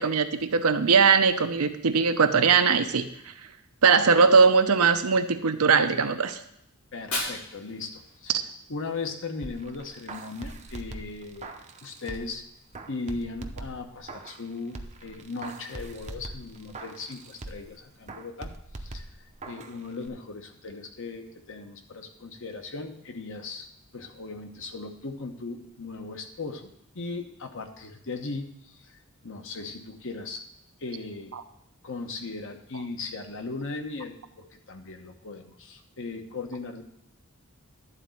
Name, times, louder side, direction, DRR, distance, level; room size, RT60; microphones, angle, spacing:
voice 1, 0.0-3.1 3.8-6.4 31.3-31.4, right 5 dB, 75° right, 9 dB, 0.7 m, -20 dB
Fire, 6.8-8.8, left 2 dB, 85° left, 3.5 m, -36 dB
voice 2, 6.9-8.4 8.7-11.5 11.8-12.5 12.9-18.5 18.8-19.1 19.4-23.7 23.9-26.7 26.9-29.0 29.2-30.4 30.8-31.4 31.8-36.8, left 3 dB, 60° left, 5 dB, 1.1 m, -38 dB
sound 1, 9.4-12.4 12.7-14.4 14.7-17.7 18.1-19.8 20.1-20.2, right 2 dB, 30° right, 0.7 m, -42 dB
11.5 x 4.1 x 7.7 m, 0.74 s
head